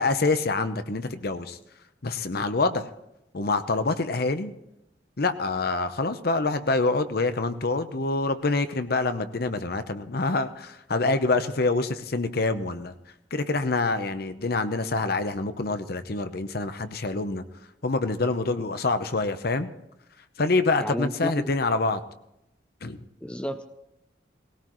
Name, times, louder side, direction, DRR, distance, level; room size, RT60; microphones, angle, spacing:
voice 1, 0.0-1.6 2.0-2.9 3.3-4.5 5.2-12.9 13.3-17.4 17.8-19.7 20.4-22.0 22.8-23.0, left 3 dB, 55° left, 10 dB, 0.8 m, -26 dB
voice 2, 20.8-21.5 23.2-23.7, equal, 5° left, 8 dB, 0.5 m, -31 dB
19.0 x 17.5 x 3.1 m, 0.85 s
head